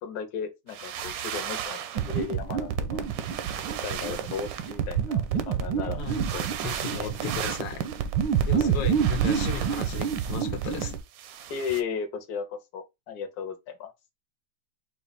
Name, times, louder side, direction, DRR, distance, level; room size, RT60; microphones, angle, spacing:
voice 1, 0.0-3.0 3.8-6.0 6.3-6.5 6.9-7.1 8.5-8.8 11.5-13.9, left 6 dB, 60° left, 1.3 m, -35 dB
sound 1, 0.7-2.3 3.0-5.2 6.0-11.8, right 9 dB, 70° right, 0.8 m, -37 dB
sound 2, 1.9-11.0, right 7 dB, 90° right, 1.3 m, -28 dB
voice 2, 6.6-7.9 8.5-11.0, left 7 dB, 85° left, 1.4 m, -35 dB
4.8 x 2.3 x 3.9 m
omnidirectional pair, 2.0 m